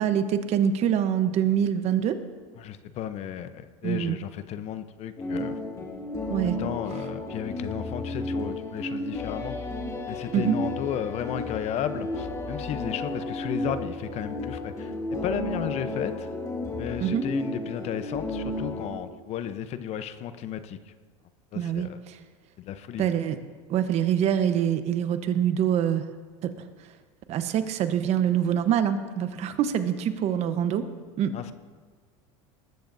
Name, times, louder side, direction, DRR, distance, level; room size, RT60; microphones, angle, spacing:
voice 1, 0.0-2.2 3.8-4.2 6.3-6.6 10.3-10.6 17.0-17.2 21.5-22.2 23.0-23.4 23.7-26.1 26.4-26.7 27.3-30.8 31.2-31.3, right 9 dB, 45° right, 10 dB, 1.0 m, -25 dB
voice 2, 2.6-5.9 6.6-9.6 10.1-16.3 16.8-20.8 21.5-22.0 22.6-23.1 31.3-31.5, left 9 dB, 45° left, 11 dB, 0.8 m, -34 dB
sound 1, 5.2-18.9, left 1 dB, 20° left, 2.7 m, -33 dB
19.5 x 14.0 x 2.7 m, 1.5 s
supercardioid pair, 110°, 15 cm